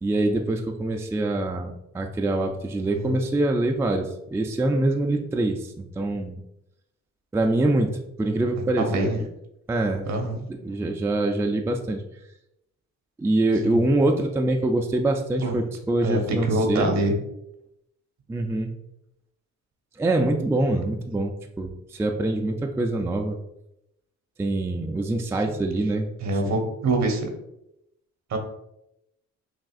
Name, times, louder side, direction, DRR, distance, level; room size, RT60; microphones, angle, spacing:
voice 1, 0.0-6.4 7.3-9.3 9.7-10.1 10.6-12.0 13.2-17.0 18.3-18.7 20.0-23.4 24.4-26.1 26.5-26.6, right 2 dB, 10° right, 3 dB, 0.3 m, -24 dB
voice 2, 8.8-9.2 10.1-10.4 13.6-13.8 15.4-15.5 16.0-17.1 26.2-27.3 28.3-28.4, right 2 dB, 65° right, 3 dB, 1.0 m, -24 dB
6.1 x 2.4 x 2.4 m, 0.83 s
cardioid pair, 90°, 30 cm